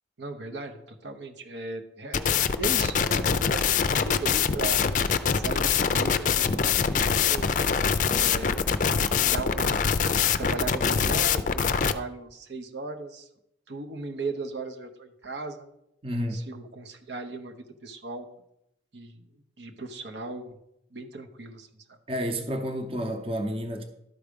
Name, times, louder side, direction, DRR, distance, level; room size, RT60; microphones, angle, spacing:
voice 1, 0.2-4.8 5.3-7.5 8.1-8.7 9.2-9.9 10.4-13.3 13.7-15.7 16.3-17.5 17.8-18.3 18.9-19.3 19.6-20.6 20.9-22.0, right 3 dB, 80° right, 0.9 m, -37 dB
sound 1, 2.1-11.9, left 6 dB, 45° left, 0.4 m, -24 dB
voice 2, 16.0-16.4 22.1-23.8, equal, 30° right, 0.8 m, -30 dB
12.5 x 4.8 x 5.2 m
head